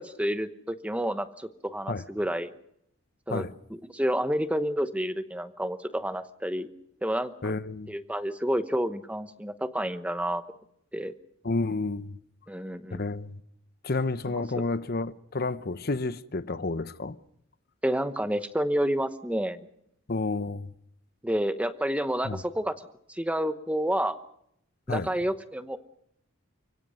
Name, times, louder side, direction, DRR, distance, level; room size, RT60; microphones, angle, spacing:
voice 1, 0.0-2.5 3.3-3.5 3.9-6.7 7.0-7.3 7.9-10.4 10.9-11.1 12.5-13.0 17.8-19.6 21.2-24.2 24.9-25.8, equal, 5° right, 1.0 m, -29 dB
voice 2, 7.4-7.9 11.4-12.2 12.9-13.4 13.8-17.2 20.1-20.7 22.2-22.4 24.9-25.1, left 3 dB, 45° left, 0.8 m, -30 dB
29.5 x 17.0 x 6.4 m
head